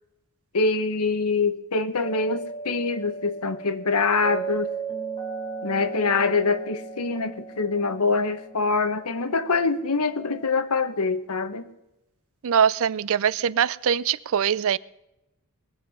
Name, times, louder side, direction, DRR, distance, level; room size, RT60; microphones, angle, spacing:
voice 1, 0.5-4.7 5.6-11.6, left 4 dB, 85° left, 11 dB, 1.0 m, -24 dB
sound 1, 2.0-10.5, right 5 dB, 25° left, 3.7 m, -37 dB
voice 2, 12.4-14.8, right 8 dB, 65° right, 20 dB, 0.4 m, -22 dB
21.0 x 7.4 x 5.4 m, 0.90 s
head